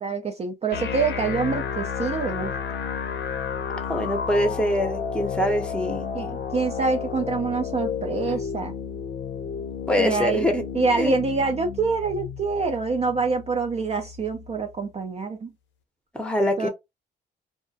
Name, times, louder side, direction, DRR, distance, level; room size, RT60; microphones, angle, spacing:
voice 1, 0.0-2.5 6.1-8.7 10.0-10.5 10.7-15.5 16.6-16.7, right 4 dB, 30° right, 0.4 m, -26 dB
sound 1, 0.7-14.7, left 7 dB, 70° left, 0.6 m, -32 dB
voice 2, 3.7-6.1 8.3-8.4 9.9-10.6 11.0-11.2 16.1-16.7, equal, 5° left, 0.7 m, -24 dB
2.3 x 2.1 x 2.6 m
cardioid pair, 90°, 20 cm